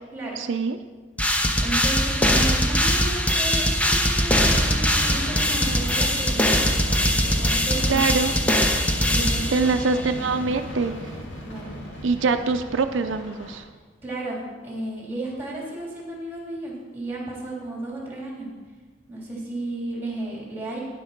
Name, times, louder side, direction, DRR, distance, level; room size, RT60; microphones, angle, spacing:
voice 1, 0.4-0.8 7.9-8.3 9.5-10.9 12.0-13.7, right 4 dB, 85° right, 8 dB, 0.5 m, -24 dB
sound 1, 1.2-10.0, equal, 5° left, 0.7 m, -21 dB
voice 2, 1.6-6.6 7.2-8.0 9.1-9.7 10.0-10.4 11.4-11.7 14.0-14.4 14.6-18.5 19.1-20.8, right 2 dB, 10° right, -4 dB, 3.4 m, -33 dB
sound 2, 4.4-13.6, equal, 90° left, 2.2 m, -36 dB
10.0 x 8.0 x 5.8 m, 1.4 s
head